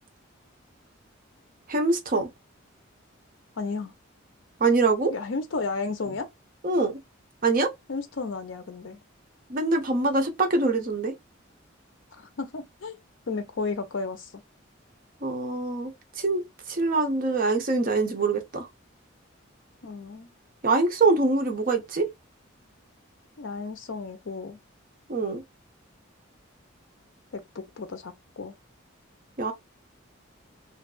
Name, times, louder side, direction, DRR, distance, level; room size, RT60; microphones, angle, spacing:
voice 1, 1.7-2.3 4.6-5.1 6.6-6.9 7.4-7.7 9.5-11.1 15.2-15.9 16.2-16.4 16.7-18.7 20.6-22.1 25.1-25.4 29.4-29.5, right 3 dB, 45° right, 0.6 m, -24 dB
voice 2, 3.6-3.9 5.1-6.3 7.9-9.0 12.1-13.0 13.3-14.3 19.8-20.3 23.4-24.6 27.3-28.5, left 4 dB, 70° left, 0.6 m, -33 dB
2.6 x 2.3 x 2.2 m
head